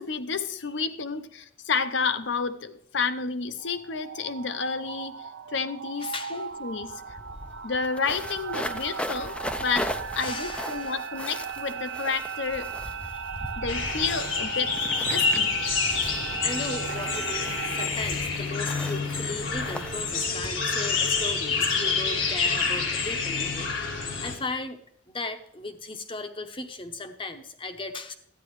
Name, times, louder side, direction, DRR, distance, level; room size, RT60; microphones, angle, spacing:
voice 1, 0.0-5.2 5.5-7.0 7.6-12.7 13.6-15.5, left 5 dB, 65° left, 11 dB, 0.6 m, -30 dB
voice 2, 0.6-1.0 6.0-6.5 8.7-8.8 10.2-11.0 13.1-13.7 14.1-14.2 15.1-15.4 16.4-24.8 25.1-28.1, left 2 dB, 25° left, 8 dB, 0.7 m, -37 dB
sound 1, 3.6-17.9, right 6 dB, 70° right, 0.5 m, -37 dB
sound 2, 6.5-6.6 6.8-21.3, left 1 dB, 5° left, 0.3 m, -39 dB
sound 3, 13.7-24.3, left 4 dB, 85° left, 1.6 m, -28 dB
12.5 x 9.5 x 3.1 m, 0.70 s
head